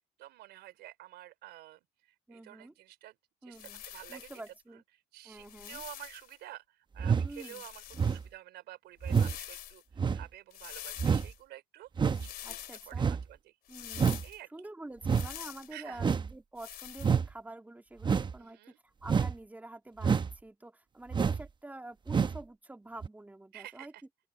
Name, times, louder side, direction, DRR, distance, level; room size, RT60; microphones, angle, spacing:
voice 1, 0.0-1.8 2.3-3.2 3.4-4.3 5.1-9.8 10.1-13.5 14.2-14.5 15.7-16.0 18.4-18.8 23.5-24.0, right 15 dB, 80° right, 3.9 m, -50 dB
voice 2, 2.3-2.7 3.4-3.8 4.1-4.8 5.2-5.8 7.2-7.6 12.4-13.1 13.7-23.9, right 2 dB, 10° right, 2.6 m, -48 dB
sound 1, 3.5-4.5 5.3-6.4 7.3-8.2 9.0-9.8 10.5-11.4 12.1-12.9 13.7-14.4 15.1-15.7 16.6-17.2, left 12 dB, 65° left, 2.6 m, -46 dB
sound 2, 7.0-7.3 8.0-8.3 9.0-9.3 10.0-10.2 11.0-11.3 12.0-12.3 12.9-13.2 13.9-14.2 15.0-15.3 16.0-16.3 17.0-17.3 18.0-18.3 19.0-19.3 20.0-20.3 21.1-21.5 22.1-22.4 23.0-23.1, right 6 dB, 25° right, 0.9 m, -28 dB
open air
cardioid pair, 110°, 17 cm